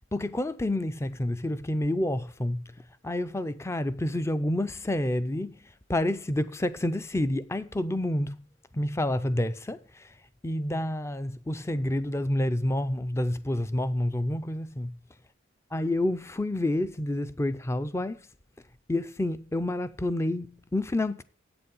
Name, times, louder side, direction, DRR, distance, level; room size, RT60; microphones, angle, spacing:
voice 1, 0.1-2.7 3.0-8.4 8.7-10.2 10.4-15.0 15.7-18.2 18.9-21.2, left 1 dB, 15° left, 0.4 m, -29 dB
8.4 x 6.9 x 5.4 m
head